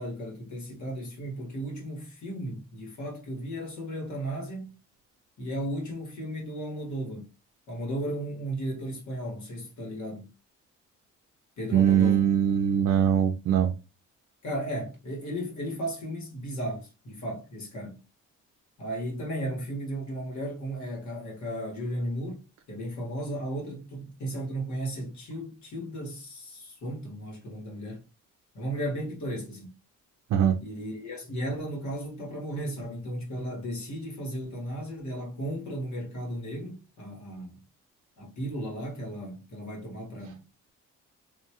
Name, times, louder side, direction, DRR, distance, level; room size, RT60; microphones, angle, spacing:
voice 1, 0.0-4.8 5.4-7.3 7.7-10.3 11.6-12.3 14.4-18.0 18.8-28.0 28.5-29.8 30.6-37.6 38.2-40.5, right 1 dB, 70° left, 1.5 m, -35 dB
voice 2, 11.7-13.7 30.3-30.6, right 9 dB, 60° right, 0.5 m, -22 dB
2.7 x 2.3 x 2.9 m
cardioid pair, 90°, 30 cm